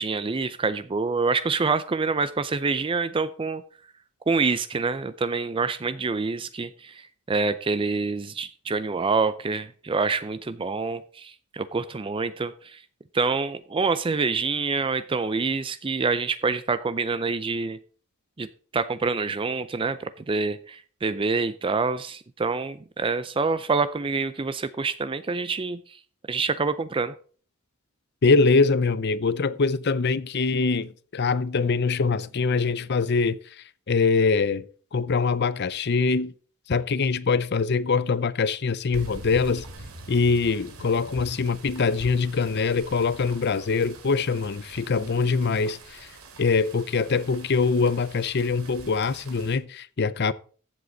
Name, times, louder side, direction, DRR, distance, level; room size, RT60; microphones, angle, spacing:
voice 1, 0.0-3.6 4.3-12.8 13.1-17.8 18.4-18.5 18.7-26.0 26.3-27.1, right 4 dB, 25° right, 0.4 m, -26 dB
voice 2, 28.2-34.7 34.9-36.3 36.7-39.7 40.1-46.1 46.4-50.3, left 4 dB, 50° left, 0.6 m, -23 dB
sound 1, 38.9-49.6, right 2 dB, 85° right, 2.5 m, -44 dB
14.5 x 7.7 x 4.0 m
head